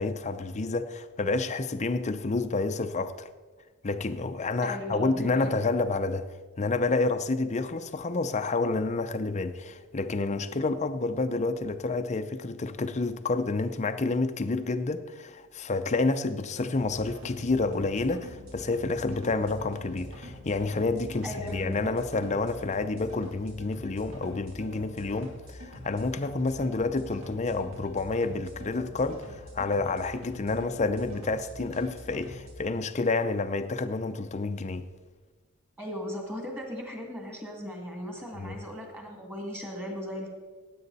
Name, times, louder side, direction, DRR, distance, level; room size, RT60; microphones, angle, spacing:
voice 1, 0.0-3.3 3.8-6.3 6.6-34.8 38.3-38.6, left 3 dB, 30° left, 0.6 m, -29 dB
voice 2, 4.6-5.7 21.2-21.9 35.8-40.3, equal, 10° right, 2.4 m, -37 dB
sound 1, 16.8-32.5, left 1 dB, 70° right, 3.2 m, -45 dB
16.5 x 8.5 x 4.1 m
head